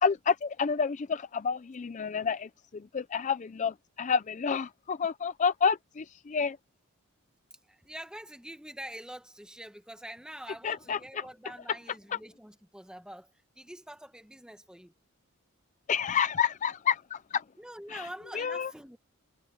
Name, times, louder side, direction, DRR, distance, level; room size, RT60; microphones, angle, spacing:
voice 1, 0.0-6.6 10.6-11.3 15.9-17.4 17.9-18.1 18.3-18.7, left 6 dB, 35° left, 0.4 m, -29 dB
voice 2, 7.7-14.9 17.6-19.0, right 1 dB, 5° right, 1.4 m, -45 dB
head